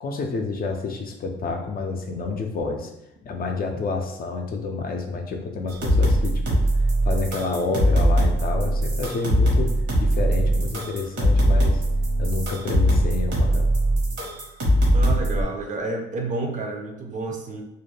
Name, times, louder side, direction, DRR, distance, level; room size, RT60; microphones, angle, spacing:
voice 1, 0.0-2.9 3.2-6.6 7.0-11.8 12.2-13.7, left 3 dB, 50° left, 3 dB, 0.5 m, -29 dB
sound 1, 5.7-15.4, equal, 70° right, 1.1 m, -21 dB
voice 2, 14.9-17.6, right 3 dB, 40° right, 2 dB, 0.5 m, -29 dB
2.5 x 2.1 x 3.2 m, 0.86 s
cardioid pair, 90°, 20 cm